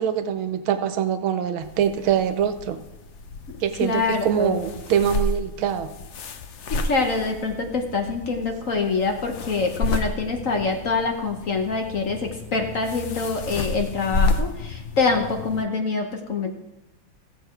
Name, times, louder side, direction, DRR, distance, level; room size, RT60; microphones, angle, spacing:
voice 1, 0.0-2.8 3.6-5.9, right 9 dB, 85° right, 10 dB, 1.6 m, -24 dB
sound 1, 1.6-15.6, left 2 dB, 70° left, 0.6 m, -31 dB
voice 2, 3.8-4.6 6.7-16.5, left 4 dB, 50° left, 3 dB, 1.1 m, -25 dB
15.0 x 7.5 x 4.5 m, 0.94 s
omnidirectional pair, 2.2 m